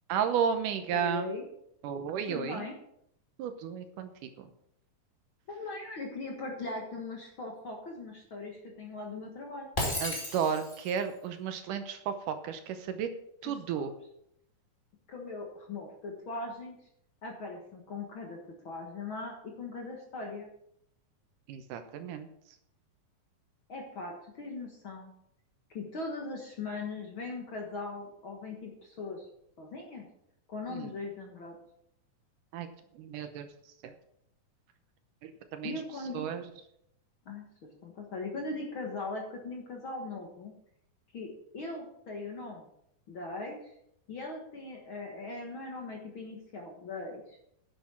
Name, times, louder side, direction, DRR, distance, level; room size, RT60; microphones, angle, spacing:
voice 1, 0.1-1.3 1.8-2.7 3.4-4.5 10.0-13.1 13.4-13.9 21.5-22.3 30.7-30.9 32.5-32.7 33.0-33.5 33.8-33.9 35.2-35.8 36.1-36.4, right 8 dB, 75° right, 9 dB, 2.3 m, -33 dB
voice 2, 0.9-1.4 2.3-2.7 5.5-9.7 13.4-13.9 15.1-16.8 17.2-18.4 18.6-20.5 23.7-25.1 25.7-29.3 29.6-30.1 30.5-31.5 35.6-36.3 37.2-37.4 37.8-40.5 41.1-42.7 43.1-43.7 44.1-47.4, left 3 dB, 50° left, 1 dB, 1.7 m, -39 dB
Shatter, 9.8-11.0, left 1 dB, 15° left, 2.2 m, -33 dB
10.5 x 7.9 x 6.2 m, 0.75 s
omnidirectional pair, 4.0 m